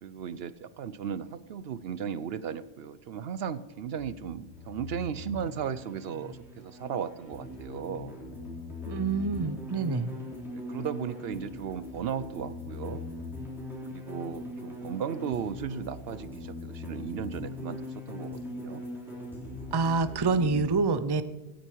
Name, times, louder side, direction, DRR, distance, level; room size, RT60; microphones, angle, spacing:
voice 1, 0.0-8.1 10.2-13.1 13.9-17.8 18.1-18.8, right 7 dB, 70° right, 16 dB, 0.8 m, -36 dB
sound 1, 4.0-20.7, left 2 dB, ahead, 3.6 m, -41 dB
voice 2, 8.9-10.1 19.7-21.2, right 4 dB, 30° right, 13 dB, 0.5 m, -27 dB
17.0 x 9.2 x 4.6 m, 1.1 s
omnidirectional pair, 1.1 m